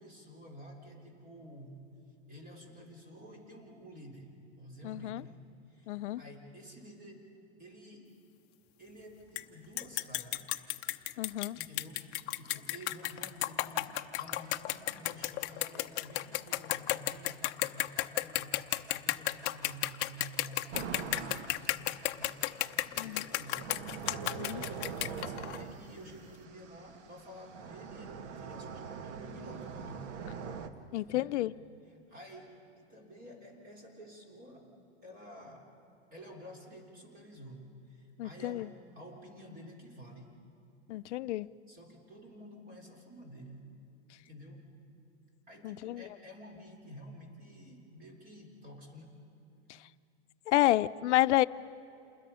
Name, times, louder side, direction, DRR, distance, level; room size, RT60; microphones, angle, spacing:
voice 1, 0.0-1.8 2.3-7.2 7.6-8.2 8.8-10.4 11.6-23.7 24.4-30.1 31.1-31.4 31.9-34.7 35.0-35.7 36.1-40.3 41.7-43.7 44.2-44.7 45.5-49.2, equal, 25° right, 1 dB, 3.7 m, -51 dB
voice 2, 4.8-5.2 5.9-6.2 11.2-11.6 23.0-23.3 24.4-24.6 30.9-31.5 38.2-38.7 40.9-41.5 45.6-46.0 50.5-51.5, left 16 dB, 80° left, 15 dB, 0.6 m, -29 dB
sound 1, 9.4-9.5 9.8-25.6, left 17 dB, 35° left, 0.7 m, -33 dB
sound 2, 20.7-30.7, right 6 dB, 80° right, 1.5 m, -43 dB
28.5 x 21.0 x 5.6 m, 2.8 s
supercardioid pair, 155°, 34 cm